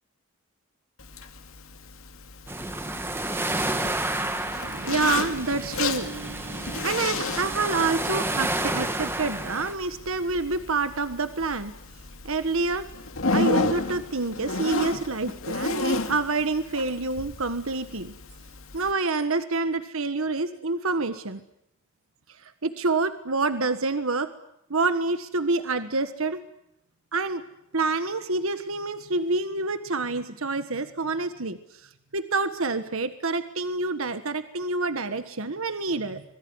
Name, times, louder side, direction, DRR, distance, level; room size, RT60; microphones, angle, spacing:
Zipper (clothing), 1.0-18.9, left 3 dB, 70° left, 2.5 m, -33 dB
sound 1, 2.5-9.7, right 2 dB, 10° right, 1.7 m, -30 dB
voice 1, 4.6-11.7 12.2-12.9 13.3-18.1 18.7-21.4 22.6-24.3 24.7-26.4 27.1-27.4 27.7-31.6 32.1-36.2, right 3 dB, 70° right, 10 dB, 1.5 m, -27 dB
25.5 x 22.0 x 9.7 m, 0.77 s
head